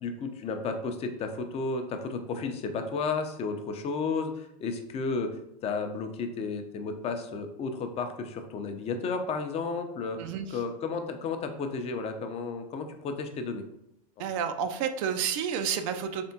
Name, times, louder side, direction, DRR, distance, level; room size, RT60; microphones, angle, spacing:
voice 1, 0.0-5.3 5.6-10.2 10.5-13.6, left 4 dB, 30° left, 6 dB, 0.5 m, -33 dB
voice 2, 10.2-10.6 14.2-16.3, right 7 dB, 55° right, 8 dB, 0.4 m, -30 dB
3.5 x 3.4 x 2.7 m, 0.80 s
hypercardioid pair, 100°, 20 cm